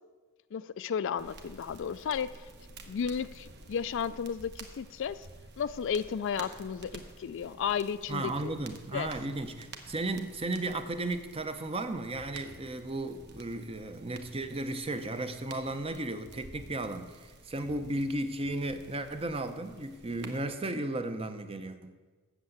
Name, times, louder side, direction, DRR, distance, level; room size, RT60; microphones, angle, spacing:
voice 1, 0.5-2.5 2.9-5.3 5.6-8.5 8.9-9.1, left 7 dB, 55° left, 14 dB, 0.3 m, -33 dB
sound 1, 1.2-20.4, right 2 dB, 50° right, 1.0 m, -51 dB
voice 2, 8.1-22.0, right 2 dB, 25° right, 9 dB, 0.6 m, -35 dB
8.1 x 6.8 x 7.9 m, 1.3 s
head